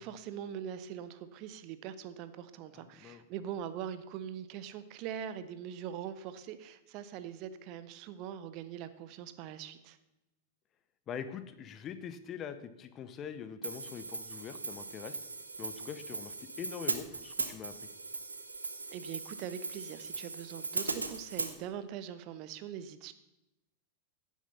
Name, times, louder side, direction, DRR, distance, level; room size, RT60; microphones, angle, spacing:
voice 1, 0.0-10.0 18.9-23.1, right 9 dB, 40° right, 13 dB, 0.8 m, -42 dB
voice 2, 2.7-3.2 11.1-15.2 15.6-17.9, left 7 dB, 30° left, 11 dB, 1.0 m, -43 dB
Hi-hat, 13.6-21.5, right 3 dB, 80° right, 1.1 m, -39 dB
16.0 x 7.4 x 5.6 m, 0.93 s
figure-of-eight pair, 90°, 0 cm